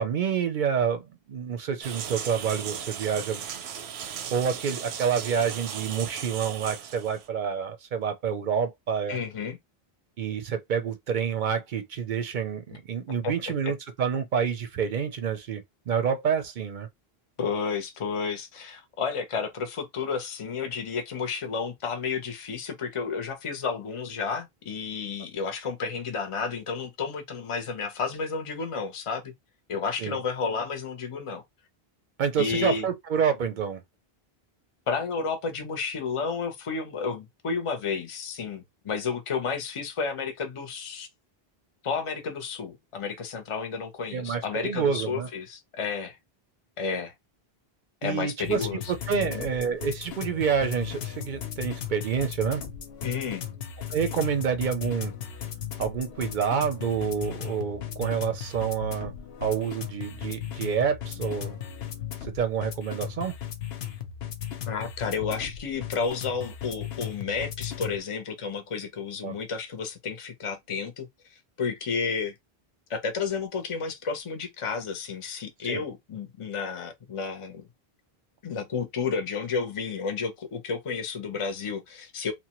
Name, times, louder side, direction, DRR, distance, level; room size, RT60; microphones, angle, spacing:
voice 1, 0.0-3.4 4.3-9.2 10.2-16.9 30.0-30.2 32.2-33.8 44.1-45.3 48.0-52.6 53.9-55.1 55.8-59.1 59.4-61.6 62.2-63.3 69.2-69.4 75.7-75.8, right 7 dB, 60° right, 0.6 m, -28 dB
sound 1, 1.8-7.3, right 8 dB, 90° right, 0.8 m, -37 dB
voice 2, 9.1-9.6 13.2-13.3 13.6-13.7 17.4-29.3 29.7-31.4 32.4-32.9 34.9-41.1 41.8-46.2 46.8-47.1 48.0-49.5 53.0-53.4 64.7-72.3 72.9-77.7 78.4-82.3, left 5 dB, 35° left, 0.6 m, -31 dB
sound 2, 48.4-68.0, left 9 dB, 80° left, 0.9 m, -37 dB
2.8 x 2.1 x 2.9 m
omnidirectional pair, 1.0 m